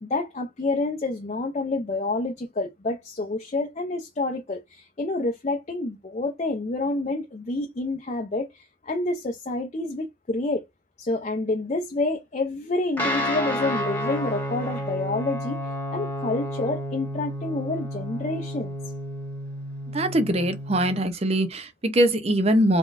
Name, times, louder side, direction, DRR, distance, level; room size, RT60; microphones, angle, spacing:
voice 1, 0.0-10.6 11.0-15.6 15.9-18.7, left 2 dB, 40° left, 0.5 m, -28 dB
Guitar, 13.0-21.0, equal, 10° left, 1.3 m, -31 dB
voice 2, 19.9-22.8, right 1 dB, 35° right, 0.6 m, -22 dB
3.7 x 3.7 x 2.5 m
head